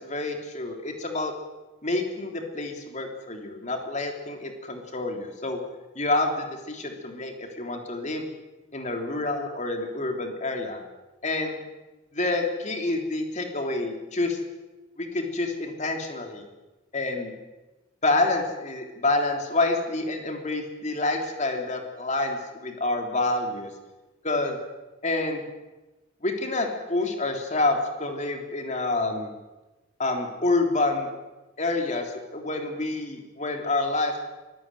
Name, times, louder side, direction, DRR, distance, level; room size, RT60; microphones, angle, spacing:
voice 1, 0.0-1.3 1.8-5.6 5.9-8.3 8.7-10.8 11.2-11.6 12.1-14.4 15.0-16.4 16.9-17.3 18.0-23.7 24.2-24.6 25.0-25.4 26.2-29.3 30.0-31.1 31.6-34.3, left 2 dB, 40° left, 3 dB, 3.4 m, -28 dB
24.0 x 15.0 x 9.2 m, 1.1 s
head